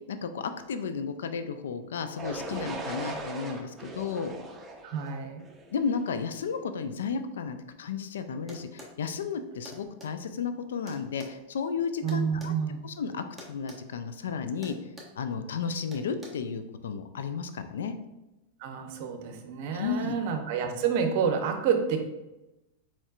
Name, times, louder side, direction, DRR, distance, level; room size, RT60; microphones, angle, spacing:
voice 1, 0.1-4.3 5.7-12.5 12.8-14.8 15.2-17.9 19.7-20.1, left 6 dB, 80° left, 9 dB, 0.4 m, -33 dB
sound 1, 2.2-6.1, right 3 dB, 20° right, 0.8 m, -39 dB
voice 2, 4.8-5.4 12.0-12.8 18.6-22.0, right 7 dB, 55° right, 5 dB, 0.7 m, -29 dB
sound 2, 8.5-9.0 9.6-10.1 10.9-12.6 13.4-13.8 14.1-14.3 14.6-15.2 15.9-16.3, equal, ahead, 1.2 m, -46 dB
4.3 x 4.3 x 2.4 m, 0.99 s
hypercardioid pair, 110°, 0 cm